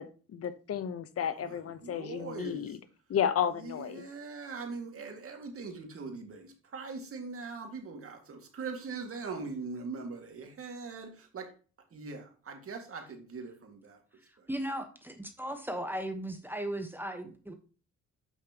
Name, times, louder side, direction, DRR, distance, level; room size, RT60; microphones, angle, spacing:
voice 1, 0.0-2.8 3.1-4.0, left 8 dB, 50° left, 13 dB, 0.8 m, -32 dB
voice 2, 1.3-2.7 3.6-11.5 11.9-14.0, right 4 dB, 45° right, 4 dB, 2.1 m, -41 dB
voice 3, 14.5-17.5, right 1 dB, 5° right, 6 dB, 1.1 m, -36 dB
8.2 x 5.7 x 2.9 m, 0.37 s
cardioid pair, 90°, 30 cm